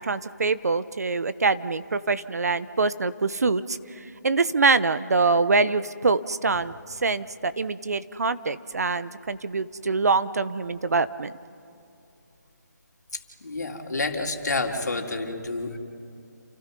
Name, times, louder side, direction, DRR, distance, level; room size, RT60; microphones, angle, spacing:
voice 1, 0.0-11.3, right 4 dB, 60° right, 14 dB, 1.1 m, -24 dB
voice 2, 13.1-15.8, left 3 dB, 65° left, 2 dB, 3.6 m, -29 dB
29.5 x 29.0 x 5.5 m, 2.6 s
figure-of-eight pair, 165°, 10 cm